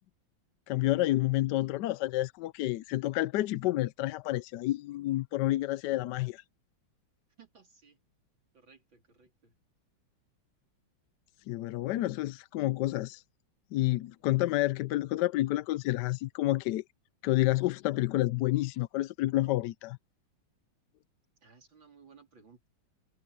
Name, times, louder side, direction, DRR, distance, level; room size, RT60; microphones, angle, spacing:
voice 1, 0.7-6.4 11.5-13.2 13.7-16.8 17.2-20.0, left 16 dB, 75° left, 1.0 m, -29 dB
voice 2, 7.4-8.0 8.5-9.5 21.4-22.7, right 5 dB, 75° right, 4.4 m, -59 dB
omnidirectional pair, 2.1 m